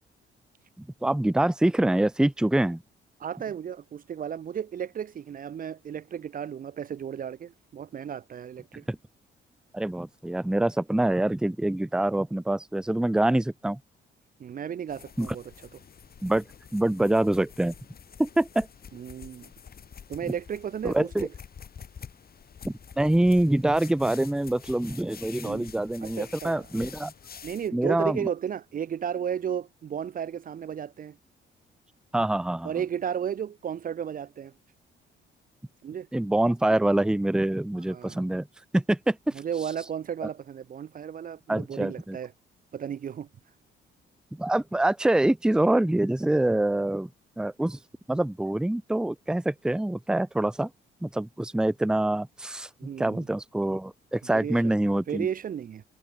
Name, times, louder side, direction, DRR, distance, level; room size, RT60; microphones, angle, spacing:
voice 1, 0.8-2.8 8.9-9.0 9.7-13.8 15.2-15.3 16.2-16.4 16.7-17.7 18.2-18.7 20.8-21.3 22.6-27.1 27.7-28.3 32.1-32.7 36.1-38.5 38.7-39.3 41.5-42.2 44.3-47.1 47.4-47.8 48.1-50.7 51.0-52.7 53.0-55.3, right 1 dB, 5° right, 0.7 m, -25 dB
voice 2, 3.2-8.8 14.4-15.5 18.9-19.5 20.1-21.3 25.4-25.7 26.0-26.7 27.4-31.2 32.6-34.5 35.8-36.1 37.9-38.2 39.3-42.3 42.7-43.3 52.8-53.3 54.3-54.8 55.1-55.8, right 8 dB, 45° right, 0.6 m, -34 dB
sound 1, 14.9-27.7, left 7 dB, 50° left, 6.6 m, -47 dB
cardioid pair, 90°, 20 cm